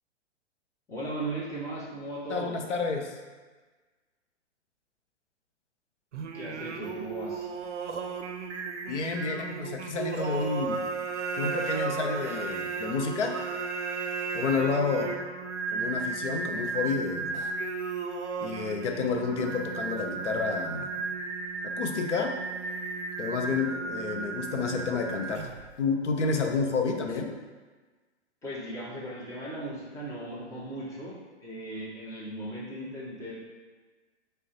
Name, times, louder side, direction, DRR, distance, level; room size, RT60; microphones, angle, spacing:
voice 1, 0.9-2.6 6.3-7.5 28.4-33.4, right 1 dB, 10° left, -6 dB, 0.6 m, -37 dB
voice 2, 2.3-3.1 8.9-10.9 11.4-13.4 14.3-15.2 15.7-17.5 18.4-20.9 21.6-22.4 23.2-25.5 25.8-27.4, left 4 dB, 85° left, 3 dB, 0.6 m, -30 dB
Singing, 6.1-25.7, right 4 dB, 85° right, 0.5 m, -34 dB
3.6 x 2.2 x 4.0 m, 1.3 s
figure-of-eight pair, 120°, 35 cm